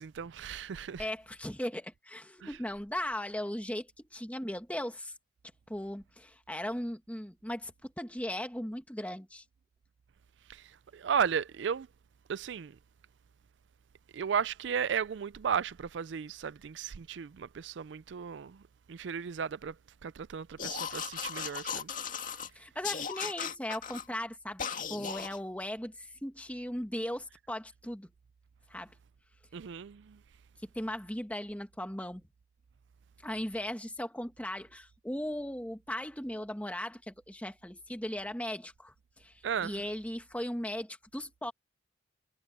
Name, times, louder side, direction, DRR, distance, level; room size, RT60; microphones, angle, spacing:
voice 1, 0.0-1.1 2.4-2.5 10.5-11.9 12.3-12.8 14.1-18.6 18.9-19.8 20.0-21.9 29.5-30.2 39.4-39.9, right 7 dB, 75° right, 0.4 m, -35 dB
voice 2, 1.0-5.1 5.7-9.4 22.6-24.6 24.9-28.1 28.7-28.9 30.7-32.2 33.2-39.3 39.6-41.5, left 1 dB, 10° left, 1.9 m, -38 dB
sound 1, 20.6-22.5 22.8-24.1 24.6-25.4, left 7 dB, 45° left, 2.1 m, -37 dB
head